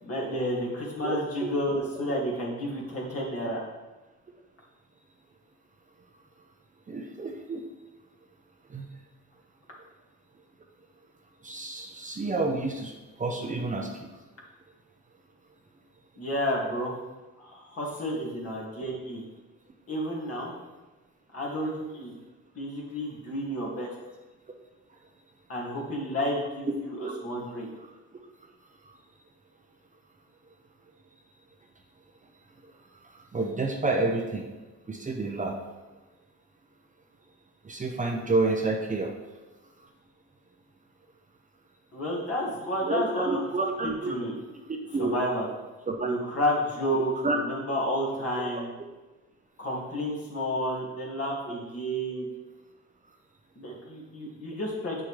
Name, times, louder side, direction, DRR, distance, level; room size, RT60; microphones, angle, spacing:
voice 1, 0.0-3.6 16.2-16.9 17.4-19.2 19.9-20.5 21.3-22.1 22.6-23.9 25.5-27.7 41.9-43.4 44.1-44.3 45.0-45.5 46.0-48.7 49.6-52.3 53.6-55.0, equal, 50° left, -4 dB, 2.4 m, -31 dB
voice 2, 1.0-1.5 6.9-7.6 8.7-8.9 11.4-13.9 27.0-27.1 33.3-34.5 34.9-35.6 37.6-39.1 42.8-44.1 44.7-45.1 45.9-46.2 47.2-47.4, right 3 dB, 25° right, 2 dB, 0.8 m, -29 dB
7.5 x 6.1 x 3.3 m, 1.2 s
cardioid pair, 90°, 30 cm